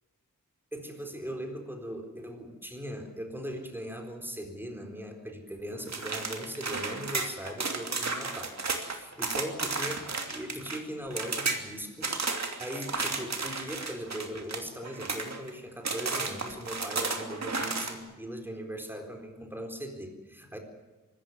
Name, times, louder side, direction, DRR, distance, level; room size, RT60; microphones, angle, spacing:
voice 1, 0.7-20.6, equal, 5° right, 4 dB, 4.2 m, -39 dB
sound 1, 5.9-10.8 11.1-11.6 12.0-15.5 15.9-17.9, right 4 dB, 60° right, 2.8 m, -33 dB
24.5 x 14.0 x 9.7 m, 1.2 s
wide cardioid pair, 110°, 31 cm